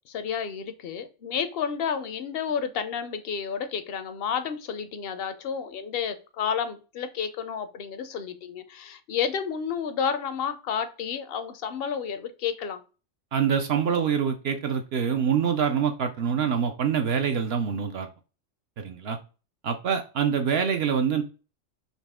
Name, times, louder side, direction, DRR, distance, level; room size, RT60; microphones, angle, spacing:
voice 1, 0.1-12.8, left 7 dB, 60° left, 10 dB, 0.7 m, -31 dB
voice 2, 13.3-18.1 18.8-19.2 19.6-21.2, right 7 dB, 65° right, 5 dB, 0.7 m, -25 dB
4.1 x 2.9 x 3.5 m, 0.34 s
omnidirectional pair, 1.3 m